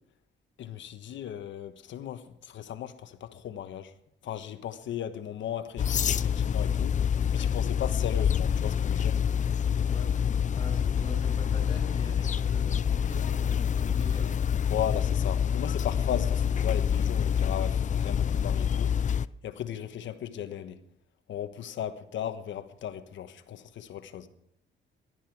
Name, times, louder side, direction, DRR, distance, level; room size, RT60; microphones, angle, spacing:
voice 1, 0.6-3.9 4.2-7.0 7.3-9.2 14.7-18.9 19.4-20.8 21.3-24.3, left 10 dB, 70° left, 1.2 m, -36 dB
sound 1, 5.8-19.3, left 8 dB, 40° left, 0.5 m, -27 dB
voice 2, 10.6-14.4, left 1 dB, 25° left, 6.1 m, -43 dB
18.0 x 12.5 x 4.8 m
cardioid pair, 90°, 20 cm